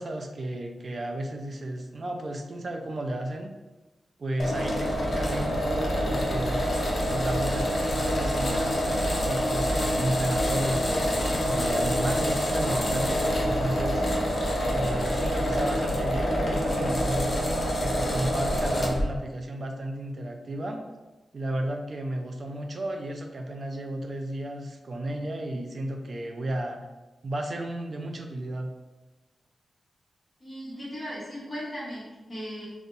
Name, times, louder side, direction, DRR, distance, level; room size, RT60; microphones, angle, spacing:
voice 1, 0.0-3.5 4.2-6.6 7.1-14.0 14.7-17.5 17.8-20.8 21.3-26.8 27.2-28.7, right 1 dB, 40° right, 3 dB, 0.3 m, -33 dB
sound 1, 4.4-19.1, equal, 40° left, 0.5 m, -26 dB
voice 2, 30.4-32.7, equal, 20° left, -7 dB, 1.0 m, -37 dB
2.6 x 2.0 x 3.7 m, 1.1 s
wide cardioid pair, 155°, 0 cm